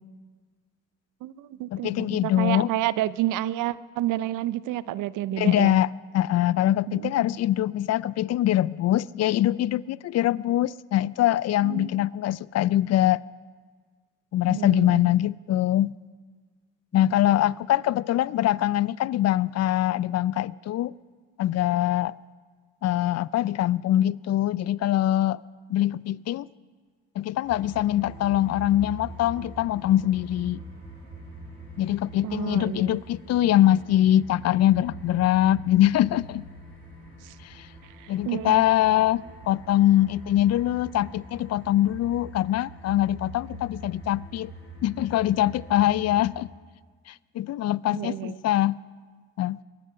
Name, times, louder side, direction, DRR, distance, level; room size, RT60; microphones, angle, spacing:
voice 1, 1.2-5.8 6.9-7.1 11.6-11.9 14.4-15.1 32.2-33.0 37.2-37.3 38.0-38.6 47.9-48.4, right 14 dB, 75° right, 0.6 m, -30 dB
voice 2, 1.7-2.7 5.4-13.2 14.3-16.0 16.9-20.9 21.4-22.1 22.8-25.4 25.7-26.5 27.2-30.6 31.8-36.5 37.4-37.7 38.1-44.5 44.8-46.5 47.1-48.8 49.4-49.6, left 13 dB, 55° left, 0.5 m, -23 dB
sound 1, 27.4-46.3, right 1 dB, 55° right, 6.3 m, -44 dB
22.5 x 11.0 x 5.6 m
supercardioid pair, 60°, 31 cm